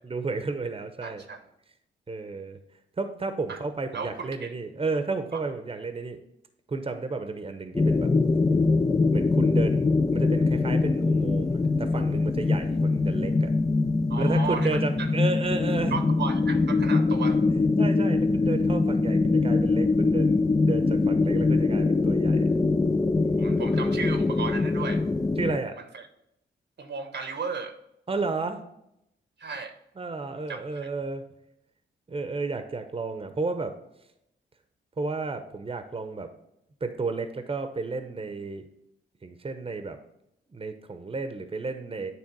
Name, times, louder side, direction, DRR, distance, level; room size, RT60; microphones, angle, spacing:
voice 1, 0.0-1.2 2.1-2.6 3.0-6.2 6.7-8.1 9.1-13.5 14.2-16.0 17.8-22.5 25.4-25.8 28.1-28.6 30.0-31.2 32.1-33.8 35.0-36.3 36.8-38.7 39.2-40.0 40.5-42.1, right 3 dB, 30° right, 8 dB, 0.8 m, -32 dB
voice 2, 1.0-1.4 3.5-3.6 3.9-4.5 5.3-5.4 14.1-15.1 15.9-17.4 23.4-25.0 25.9-26.1 26.8-27.8 29.4-29.7 30.5-30.9, right 5 dB, 70° right, 7 dB, 1.0 m, -35 dB
sound 1, 7.8-25.6, left 3 dB, 20° left, 0.4 m, -23 dB
9.1 x 3.3 x 4.6 m, 0.79 s
cardioid pair, 55°, 19 cm